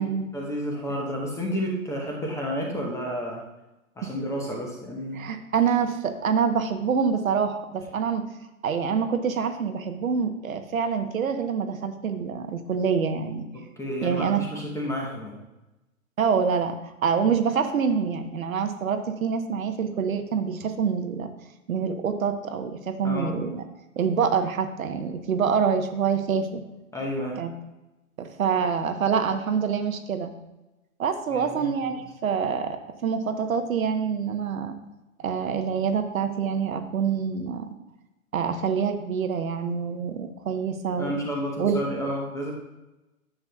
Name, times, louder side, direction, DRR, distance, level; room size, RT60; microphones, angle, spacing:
voice 1, 0.0-3.4 4.0-5.2 13.5-15.4 23.0-23.3 26.9-27.4 31.3-32.0 41.0-42.5, equal, 5° left, -1 dB, 0.9 m, -31 dB
voice 2, 5.1-8.2 8.6-13.4 14.0-14.4 16.2-16.8 17.0-21.3 21.7-23.6 24.0-26.6 27.4-27.5 28.2-30.3 31.0-34.7 35.2-37.7 38.3-41.1 41.6-41.8, right 6 dB, 70° right, 7 dB, 0.9 m, -26 dB
9.8 x 7.0 x 2.2 m, 1.0 s
figure-of-eight pair, 120°, 42 cm